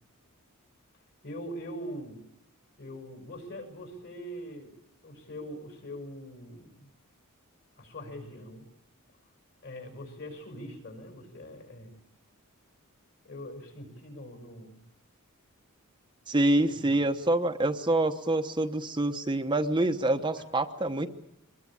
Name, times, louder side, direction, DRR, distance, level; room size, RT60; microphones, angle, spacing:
voice 1, 1.2-2.2 2.8-4.8 5.0-6.9 7.8-8.7 9.6-12.0 13.2-14.8 16.6-17.1 20.4-20.5, equal, 55° left, 4 dB, 5.9 m, -42 dB
voice 2, 16.3-21.1, right 2 dB, 20° right, 5 dB, 1.0 m, -26 dB
23.5 x 21.0 x 8.8 m, 0.80 s
head